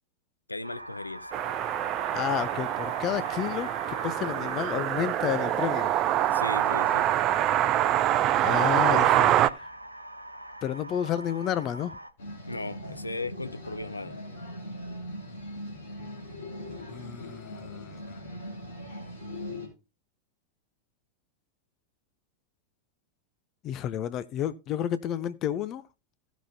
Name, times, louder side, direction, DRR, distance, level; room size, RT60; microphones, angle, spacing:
voice 1, 0.5-1.3 6.3-7.1 12.5-14.2, left 2 dB, 85° left, 0.6 m, -36 dB
sound 1, 0.6-12.1, right 1 dB, 85° right, 0.8 m, -43 dB
sound 2, 1.3-9.5, right 12 dB, 35° right, 0.5 m, -25 dB
voice 2, 2.1-5.9 8.4-9.7 10.6-11.9 16.9-18.2 23.6-25.8, left 10 dB, 35° left, 0.5 m, -31 dB
sound 3, 12.2-19.7, left 1 dB, 60° left, 4.1 m, -40 dB
16.5 x 6.1 x 2.8 m
figure-of-eight pair, 90°, 0 cm